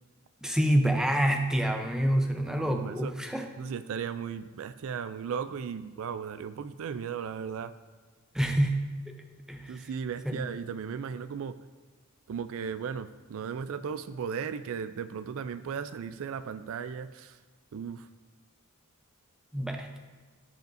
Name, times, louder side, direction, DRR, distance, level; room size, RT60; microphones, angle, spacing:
voice 1, 0.4-3.5 8.3-8.9 9.5-9.8 10.3-10.4 19.5-20.0, right 1 dB, 5° right, 4 dB, 0.6 m, -27 dB
voice 2, 2.5-3.1 3.6-7.7 9.7-11.6 12.3-17.4 17.7-18.1, right 7 dB, 65° right, 12 dB, 0.3 m, -36 dB
15.5 x 5.2 x 2.6 m, 1.4 s
head